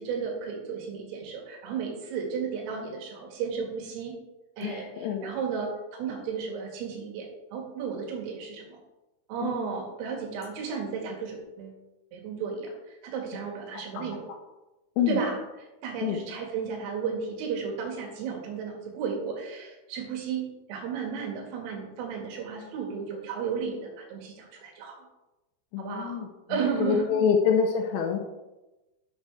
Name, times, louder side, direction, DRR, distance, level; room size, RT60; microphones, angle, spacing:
voice 1, 0.0-4.1 4.6-8.8 9.3-11.8 12.1-14.3 15.1-25.1 25.8-27.3, right 6 dB, 80° right, 1 dB, 4.5 m, -34 dB
voice 2, 4.6-5.3 9.4-9.7 13.9-14.1 15.0-15.2 16.0-16.2 25.7-26.3 26.8-28.2, left 7 dB, 85° left, 2 dB, 2.6 m, -26 dB
11.5 x 7.8 x 3.4 m, 1.0 s
omnidirectional pair, 5.9 m